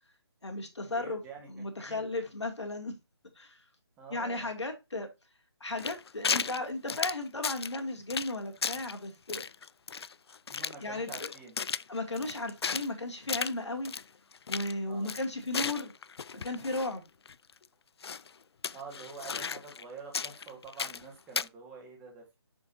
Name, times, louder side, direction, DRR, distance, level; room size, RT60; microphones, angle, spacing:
voice 1, 0.4-1.2 1.5-2.9 3.4-3.6 4.1-5.1 5.6-9.5 10.6-11.3 11.9-13.9 14.5-15.9 16.3-17.0, left 2 dB, 85° left, 2.4 m, -35 dB
voice 2, 0.9-2.1 4.0-4.5 10.5-11.5 14.8-15.1 18.7-22.4, right 5 dB, 10° right, 1.5 m, -47 dB
sound 1, 5.8-6.6 6.9-7.8 8.1-8.3 8.6-8.9 9.3-10.8 11.1-12.9 13.3-13.5 13.8-14.0 14.3-14.7 15.0-16.9 17.2-17.3 18.0-18.3 18.6-19.8 20.1-21.0 21.3-21.5, left 6 dB, 65° left, 0.4 m, -35 dB
7.1 x 6.3 x 2.6 m
figure-of-eight pair, 160°, 14 cm